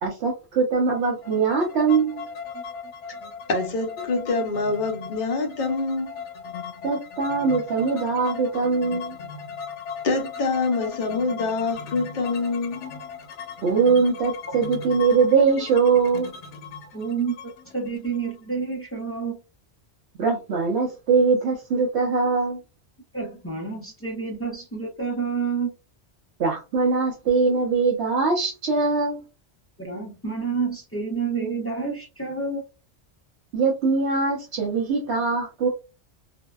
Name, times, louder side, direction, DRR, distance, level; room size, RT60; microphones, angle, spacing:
voice 1, 0.0-2.3 6.8-9.2 13.6-16.3 20.2-22.6 26.4-29.2 33.5-35.7, right 5 dB, 75° right, 0.9 m, -22 dB
sound 1, 1.0-18.7, left 6 dB, 90° left, 1.0 m, -38 dB
voice 2, 3.5-6.1 10.0-12.8, left 3 dB, 50° left, 0.7 m, -25 dB
voice 3, 16.9-19.4 23.1-25.7 29.8-32.6, right 5 dB, 20° left, 0.4 m, -29 dB
2.6 x 2.1 x 2.2 m
omnidirectional pair, 1.2 m